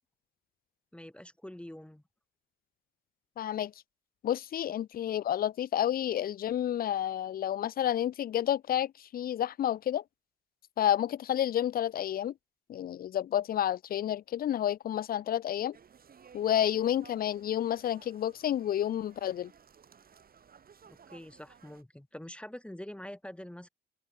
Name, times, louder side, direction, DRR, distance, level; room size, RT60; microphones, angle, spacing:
voice 1, 0.9-2.0 20.9-23.7, left 1 dB, 5° left, 1.2 m, -45 dB
voice 2, 3.4-3.7 4.2-10.0 10.8-12.3 12.7-15.8 16.3-19.5, left 11 dB, 50° left, 0.4 m, -30 dB
sound 1, 15.7-21.8, right 7 dB, 50° right, 6.0 m, -58 dB
open air
cardioid pair, 90°, 20 cm